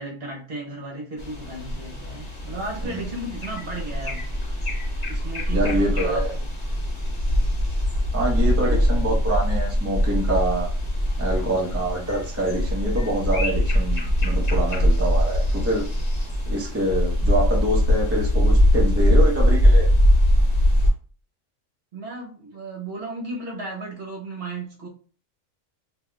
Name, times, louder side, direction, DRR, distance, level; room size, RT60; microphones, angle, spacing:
voice 1, 0.0-4.3 5.1-6.4 7.2-7.6 8.3-9.0 21.9-24.9, right 2 dB, 50° right, 1.2 m, -35 dB
sound 1, 1.2-20.9, equal, 30° left, 1.6 m, -22 dB
voice 2, 5.5-6.3 8.1-10.7 11.2-15.9 16.5-19.9, right 1 dB, 15° right, 0.7 m, -25 dB
4.2 x 2.7 x 2.3 m
omnidirectional pair, 1.4 m